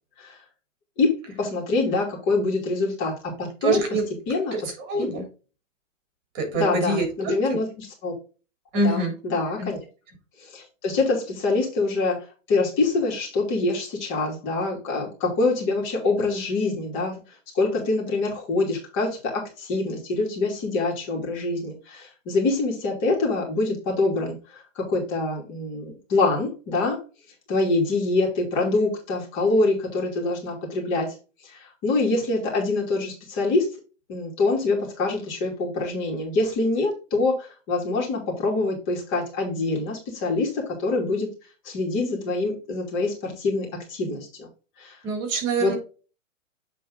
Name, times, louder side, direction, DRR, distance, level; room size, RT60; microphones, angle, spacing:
voice 1, 1.4-3.8 4.3-4.5 5.0-5.1 6.5-8.1 8.7-9.8 10.4-12.2 12.5-17.2 17.5-27.0 27.5-31.2 31.4-33.7 34.1-41.3 41.6-44.5 44.8-45.0 45.6-45.7, left 3 dB, 30° left, -1 dB, 2.7 m, -25 dB
voice 2, 3.6-4.0 4.5-5.2 6.3-7.3 8.7-9.1 9.6-9.7 45.0-45.8, right 3 dB, 35° right, 3 dB, 3.3 m, -25 dB
8.3 x 3.9 x 3.8 m, 0.34 s
hypercardioid pair, 140°, 39 cm